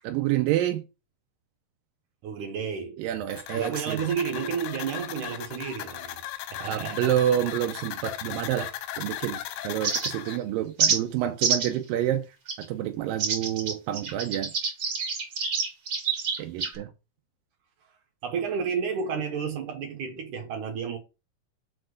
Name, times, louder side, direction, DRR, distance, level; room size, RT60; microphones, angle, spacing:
voice 1, 0.0-0.8 3.0-4.0 6.6-12.3 12.7-14.5 16.4-16.9, right 12 dB, 85° right, 2.4 m, -28 dB
voice 2, 2.2-3.1 3.6-6.2 6.5-7.2 17.8-21.0, right 6 dB, 65° right, 2.4 m, -31 dB
sound 1, 3.3-10.4, left 12 dB, 90° left, 2.4 m, -37 dB
sound 2, 9.8-10.4 10.8-11.0 11.4-11.8 12.5-12.6 13.2-16.8, right 5 dB, 45° right, 2.4 m, -27 dB
5.8 x 4.4 x 6.4 m
omnidirectional pair, 4.1 m